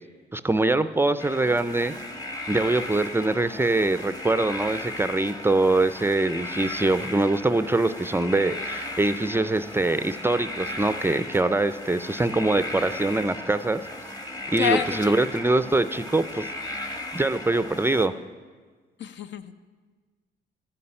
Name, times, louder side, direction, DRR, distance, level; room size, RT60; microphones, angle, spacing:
voice 1, 0.3-1.9 2.5-13.8 14.5-16.5 17.1-18.1, right 2 dB, 10° right, 13 dB, 0.4 m, -23 dB
sound 1, 1.2-18.1, left 1 dB, 20° left, 1.2 m, -36 dB
voice 2, 14.6-15.2 19.0-19.6, left 8 dB, 65° left, 10 dB, 0.8 m, -28 dB
13.0 x 6.8 x 8.7 m, 1.5 s
cardioid pair, 90°, 20 cm